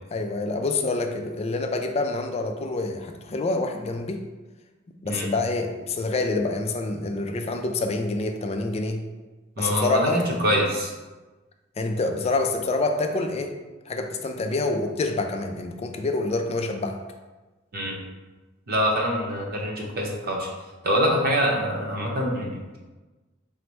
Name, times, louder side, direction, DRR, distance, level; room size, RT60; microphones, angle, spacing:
voice 1, 0.1-4.2 5.0-9.0 9.6-10.2 11.8-13.5 13.9-17.0, left 3 dB, 30° left, 5 dB, 0.3 m, -27 dB
voice 2, 9.6-10.9 17.7-18.0 18.7-20.5 20.8-22.8, equal, 50° right, -1 dB, 0.7 m, -25 dB
4.0 x 2.1 x 4.5 m, 1.2 s
head